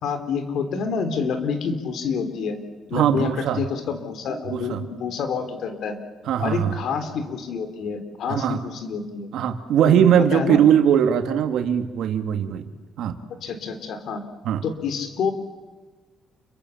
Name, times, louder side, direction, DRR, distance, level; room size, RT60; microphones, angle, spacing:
voice 1, 0.0-2.6 2.9-3.3 3.6-6.0 6.4-9.3 9.8-10.0 10.3-10.6 13.4-14.2 14.6-15.3, left 5 dB, 70° left, 8 dB, 3.9 m, -28 dB
voice 2, 2.9-3.6 4.5-4.8 6.2-6.8 8.3-8.6 9.3-12.7 13.0-13.2 14.4-14.6, right 9 dB, 80° right, 8 dB, 2.2 m, -20 dB
29.0 x 24.0 x 7.3 m, 1.3 s
cardioid pair, 90°, 0 cm